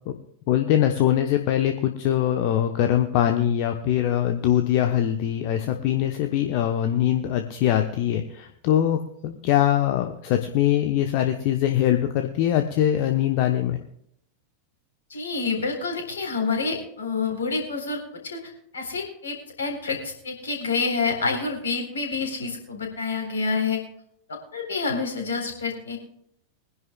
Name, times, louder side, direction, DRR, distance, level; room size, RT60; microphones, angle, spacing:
voice 1, 0.5-13.8, left 11 dB, 45° left, 6 dB, 1.0 m, -22 dB
voice 2, 15.1-23.8 24.3-26.0, left 4 dB, 65° left, 2 dB, 4.0 m, -28 dB
23.0 x 11.0 x 2.3 m, 0.73 s
figure-of-eight pair, 90°, 0 cm